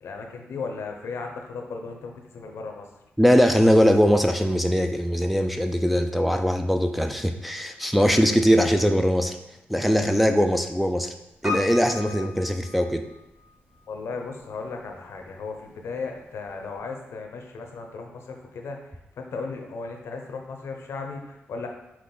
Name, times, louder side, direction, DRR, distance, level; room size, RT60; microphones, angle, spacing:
voice 1, 0.0-2.9 13.9-21.7, left 4 dB, 75° left, 3 dB, 0.7 m, -36 dB
voice 2, 3.2-9.4 9.7-11.1 11.4-13.0, equal, ahead, 5 dB, 0.3 m, -21 dB
Piano, 11.4-13.5 13.7-13.8, left 3 dB, 30° right, 1.5 m, -34 dB
5.6 x 2.5 x 3.8 m, 0.88 s
cardioid pair, 85°, 4 cm